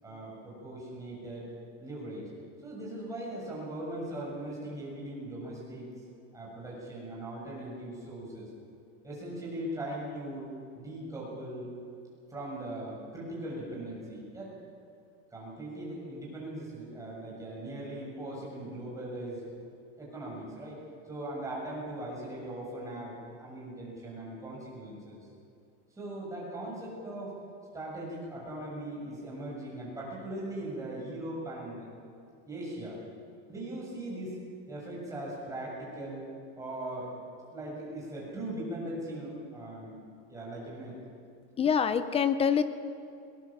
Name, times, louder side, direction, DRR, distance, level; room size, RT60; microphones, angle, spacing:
voice 1, 0.0-1.5 1.8-2.3 2.6-5.9 6.3-8.5 9.0-11.7 12.3-14.5 15.3-19.5 20.0-20.8 21.1-25.2 25.9-27.4 27.7-31.9 32.5-33.0 33.5-34.4 34.7-36.3 36.5-37.1 37.5-40.0 40.3-41.0, right 1 dB, 10° right, -5 dB, 6.9 m, -39 dB
voice 2, 41.6-42.6, left 7 dB, 15° left, 12 dB, 0.6 m, -25 dB
21.0 x 19.5 x 7.3 m, 2.4 s
supercardioid pair, 165°, 35 cm